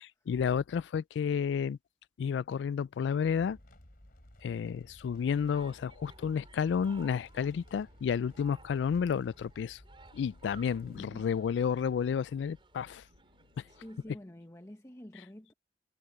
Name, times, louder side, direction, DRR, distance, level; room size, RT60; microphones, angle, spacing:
voice 1, 0.3-1.8 2.2-3.6 4.4-9.8 10.1-13.0, left 7 dB, 80° left, 0.3 m, -31 dB
sound 1, 3.4-11.0, left 1 dB, 55° left, 3.1 m, -56 dB
sound 2, 5.1-14.0, right 3 dB, 30° right, 4.4 m, -59 dB
sound 3, 7.7-8.7 9.4-11.8 12.7-13.8, right 2 dB, 80° right, 1.6 m, -60 dB
voice 2, 13.7-15.5, equal, 15° left, 1.1 m, -48 dB
head